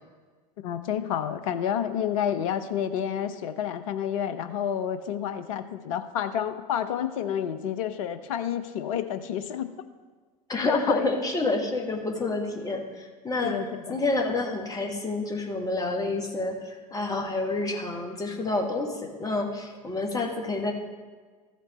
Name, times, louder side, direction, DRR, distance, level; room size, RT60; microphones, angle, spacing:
voice 1, 0.6-9.7 10.6-11.1 13.4-14.0, left 9 dB, 60° left, 10 dB, 0.8 m, -29 dB
voice 2, 10.5-13.6 13.9-20.7, left 2 dB, 20° left, 1 dB, 1.7 m, -28 dB
14.5 x 5.2 x 4.3 m, 1.5 s
figure-of-eight pair, 75°, 20 cm